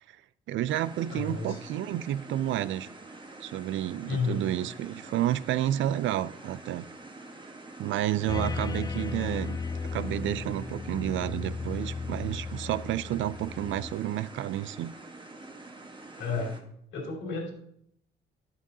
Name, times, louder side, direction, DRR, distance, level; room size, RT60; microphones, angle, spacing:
voice 1, 0.5-2.9 3.4-6.9 7.8-9.6 9.9-14.9, right 12 dB, 75° right, 0.4 m, -30 dB
sound 1, 0.7-16.6, right 2 dB, 25° right, 1.2 m, -47 dB
voice 2, 1.1-1.6 4.1-4.5 16.2-16.6 16.9-17.5, left 4 dB, 75° left, 2.8 m, -32 dB
sound 2, 8.3-13.9, left 4 dB, 20° left, 0.5 m, -35 dB
10.5 x 7.7 x 2.7 m
cardioid pair, 90°, 20 cm